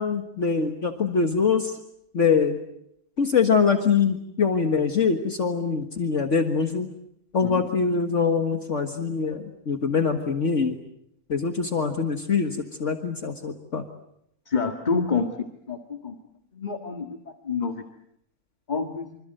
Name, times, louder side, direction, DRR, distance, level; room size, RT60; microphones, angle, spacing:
voice 1, 0.0-1.8 2.1-2.6 3.2-6.9 7.3-10.8 11.3-13.8, left 5 dB, 55° left, 5 dB, 1.9 m, -23 dB
voice 2, 14.5-15.3 15.7-16.1 16.6-17.2 17.5-17.8 18.7-19.2, left 5 dB, 30° left, 6 dB, 1.8 m, -27 dB
26.5 x 26.0 x 7.9 m, 0.76 s
omnidirectional pair, 1.6 m